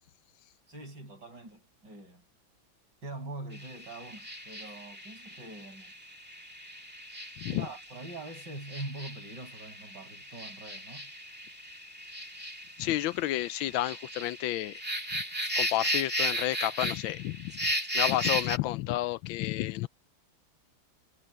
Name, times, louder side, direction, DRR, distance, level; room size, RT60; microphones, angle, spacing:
voice 1, 0.7-2.2 3.0-5.9 7.5-11.1, right 2 dB, 60° right, 7.1 m, -43 dB
sound 1, 3.5-18.6, equal, 5° right, 2.2 m, -36 dB
voice 2, 12.8-14.8 15.1-15.2 15.6-19.9, left 15 dB, 80° left, 1.4 m, -31 dB
omnidirectional pair, 2.2 m